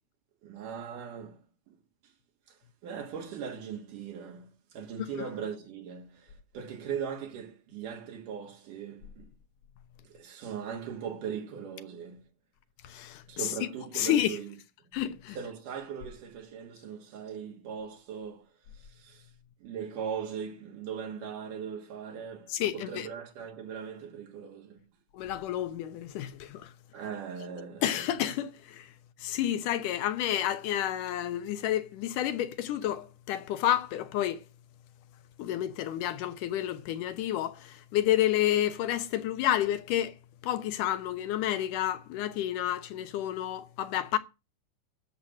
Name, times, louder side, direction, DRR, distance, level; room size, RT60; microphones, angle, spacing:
voice 1, 0.4-1.7 2.0-2.1 2.5-9.3 10.0-12.3 13.3-14.6 15.3-19.3 19.6-24.9 26.9-28.1, right 7 dB, 85° right, 3.2 m, -40 dB
voice 2, 12.8-13.2 14.0-14.4 14.9-15.4 22.5-23.1 25.1-26.7 27.8-28.9 29.2-34.4 35.4-40.1 40.4-44.2, left 12 dB, 85° left, 2.7 m, -30 dB
12.5 x 7.4 x 6.4 m
omnidirectional pair, 3.6 m